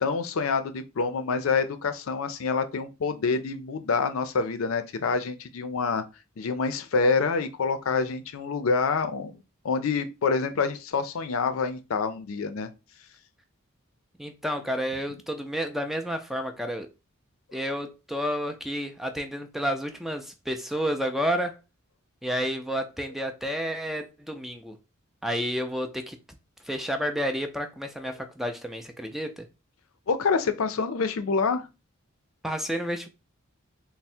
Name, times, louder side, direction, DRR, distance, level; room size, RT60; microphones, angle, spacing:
voice 1, 0.0-6.0 6.4-9.3 9.6-12.7 30.1-31.7, left 4 dB, 80° left, 0.5 m, -27 dB
voice 2, 14.2-16.9 17.5-21.6 22.2-24.8 25.2-26.2 26.6-29.5 32.4-33.1, equal, ahead, 0.3 m, -30 dB
3.4 x 2.0 x 4.2 m
head